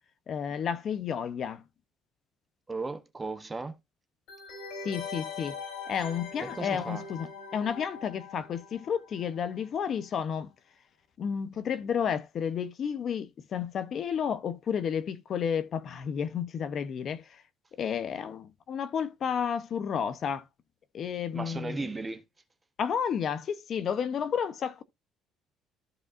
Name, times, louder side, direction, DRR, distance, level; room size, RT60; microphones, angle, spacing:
voice 1, 0.3-1.6 4.8-5.5 5.9-10.5 11.2-17.4 17.8-20.5 20.9-21.8 22.8-24.8, left 7 dB, 35° left, 0.6 m, -31 dB
voice 2, 2.7-3.8 6.4-7.0 21.3-22.2, right 3 dB, 15° right, 0.7 m, -36 dB
sound 1, 4.3-9.8 10.0-10.1, left 5 dB, 85° left, 4.0 m, -42 dB
14.0 x 4.7 x 2.4 m
cardioid pair, 170°, 0 cm